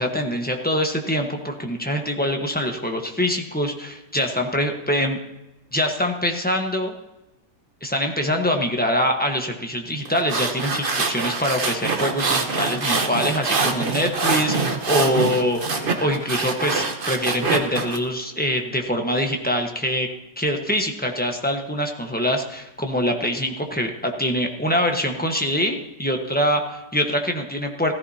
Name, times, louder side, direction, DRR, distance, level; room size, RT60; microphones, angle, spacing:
voice 1, 0.0-5.2 5.7-6.9 7.8-20.1 20.4-27.9, equal, 5° left, 3 dB, 1.0 m, -24 dB
sound 1, 10.1-18.0, right 4 dB, 35° right, 1.1 m, -24 dB
15.5 x 14.5 x 2.8 m, 0.96 s
omnidirectional pair, 1.8 m